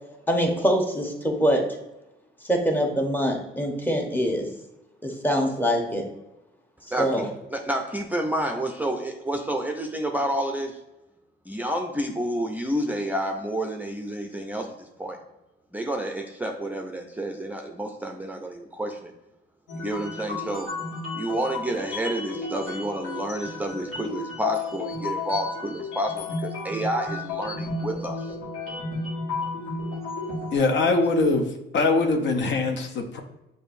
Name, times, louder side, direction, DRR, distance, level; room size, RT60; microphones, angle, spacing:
voice 1, 0.3-1.6 2.4-4.5 5.0-6.0 7.0-7.2, equal, 10° left, 1 dB, 0.9 m, -24 dB
voice 2, 7.5-10.8 11.5-15.2 15.7-19.1 19.7-20.7 21.1-28.3 30.8-30.9, right 1 dB, 10° right, 2 dB, 0.5 m, -29 dB
sound 1, 19.7-30.6, left 3 dB, 90° left, 1.4 m, -32 dB
voice 3, 30.5-33.2, left 3 dB, 65° left, 4 dB, 0.7 m, -22 dB
6.5 x 2.6 x 2.6 m, 0.96 s
cardioid pair, 90°, 20 cm